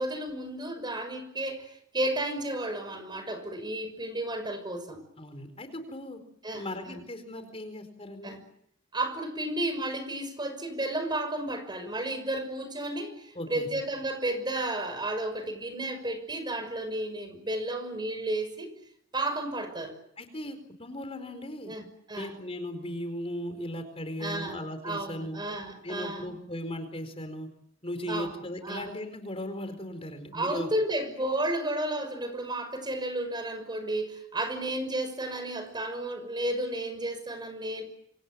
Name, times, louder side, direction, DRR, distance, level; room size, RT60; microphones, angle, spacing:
voice 1, 0.0-5.0 6.4-7.0 8.2-8.4 8.9-18.7 19.1-20.0 21.7-22.3 24.2-26.4 28.1-28.3 28.6-28.9 30.3-37.8, right 1 dB, 25° right, 9 dB, 6.1 m, -32 dB
voice 2, 5.2-6.2 6.5-8.4 13.3-13.7 20.2-21.7 22.1-25.4 25.8-27.5 27.8-30.7, left 1 dB, 30° left, 8 dB, 4.5 m, -37 dB
27.5 x 27.0 x 7.7 m, 0.71 s
head